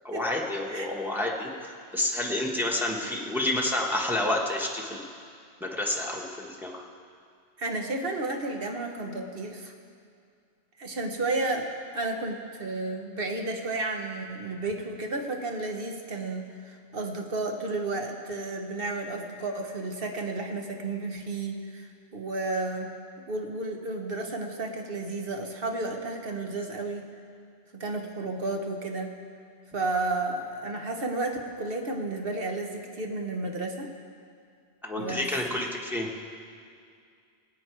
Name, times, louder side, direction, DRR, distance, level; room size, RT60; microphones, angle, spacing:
voice 1, 0.0-5.0 5.6-6.8 34.8-36.1, left 1 dB, ahead, -2 dB, 1.4 m, -29 dB
voice 2, 7.6-9.7 10.8-11.7 11.9-22.9 23.3-27.0 27.7-29.1 29.7-33.9 35.0-35.3, right 2 dB, 55° right, 3 dB, 1.4 m, -32 dB
20.0 x 8.8 x 4.6 m, 2.3 s
omnidirectional pair, 1.2 m